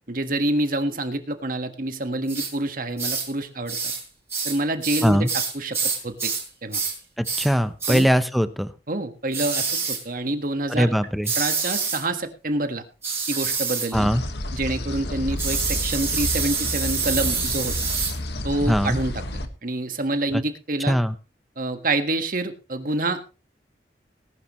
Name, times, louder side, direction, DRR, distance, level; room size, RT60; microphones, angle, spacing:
voice 1, 0.1-3.8 4.4-5.3 5.5-5.8 6.0-6.3 6.6-6.8 7.9-8.1 8.9-10.9 11.3-12.8 13.3-14.1 14.5-17.7 18.4-21.0 21.6-23.2, right 2 dB, 50° right, 8 dB, 1.5 m, -27 dB
sound 1, 2.3-2.5 3.0-3.3 3.7-4.0 4.3-6.5 6.7-7.0 7.2-7.5 7.8-8.1 9.3-10.0 11.2-12.0 13.0-13.9 15.4-18.2, right 5 dB, 15° right, 6.1 m, -27 dB
voice 2, 7.2-8.7 10.7-11.3 13.9-14.2 18.7-19.0 20.9-21.1, equal, ahead, 11 dB, 0.8 m, -21 dB
sound 2, 13.9-19.5, left 1 dB, 70° left, 1.6 m, -30 dB
19.0 x 11.5 x 3.1 m, 0.32 s
head